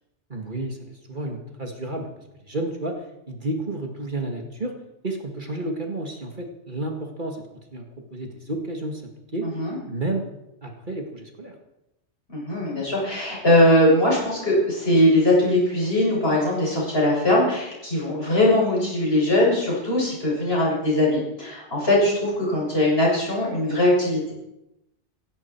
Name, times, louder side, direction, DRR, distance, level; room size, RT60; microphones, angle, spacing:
voice 1, 0.3-2.1 2.4-3.0 3.3-4.7 5.0-7.4 7.7-7.8 8.1-9.0 9.3-9.5 9.9-10.2 10.6-11.5, right 2 dB, 45° right, 3 dB, 2.1 m, -31 dB
voice 2, 9.4-9.8 12.3-24.3, left 1 dB, 55° left, -5 dB, 7.4 m, -21 dB
17.0 x 15.5 x 4.6 m, 0.89 s
omnidirectional pair, 1.2 m